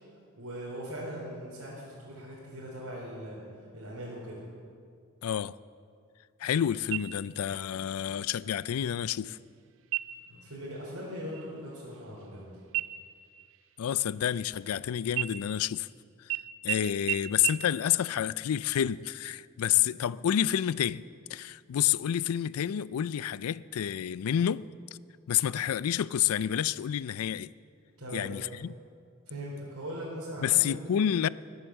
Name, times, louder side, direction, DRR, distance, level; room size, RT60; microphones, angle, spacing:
voice 1, 0.4-4.4 10.3-12.5 28.0-28.3 29.3-31.0, equal, 80° right, 3.9 m, -40 dB
voice 2, 5.2-5.6 6.4-9.4 13.8-15.9 16.2-16.3 16.6-21.0 21.3-24.7 25.3-27.5 28.1-28.7 30.4-31.3, left 10 dB, 70° left, 0.4 m, -29 dB
sound 1, 6.9-7.6 8.0-8.1 8.6-9.1 9.8-10.4 10.8-11.0 11.3-12.4 12.7-14.7 15.1-15.9 16.3-16.4 16.7-16.8 17.1-17.2 17.4-17.5, right 15 dB, 65° right, 0.5 m, -35 dB
19.5 x 8.1 x 7.4 m
head